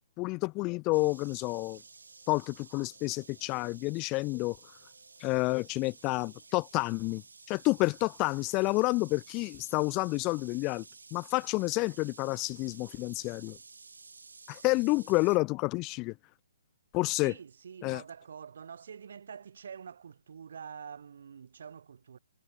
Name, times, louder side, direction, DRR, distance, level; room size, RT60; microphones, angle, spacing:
voice 1, 0.2-1.8 2.3-4.6 5.2-7.2 7.5-10.8 11.1-13.6 14.5-16.1 16.9-17.3 17.8-18.0, left 24 dB, 25° left, 0.5 m, -29 dB
sound 1, 0.9-15.4, right 4 dB, 85° right, 4.3 m, -53 dB
voice 2, 17.2-22.2, right 7 dB, 60° right, 2.6 m, -46 dB
hypercardioid pair, 150°, 0 cm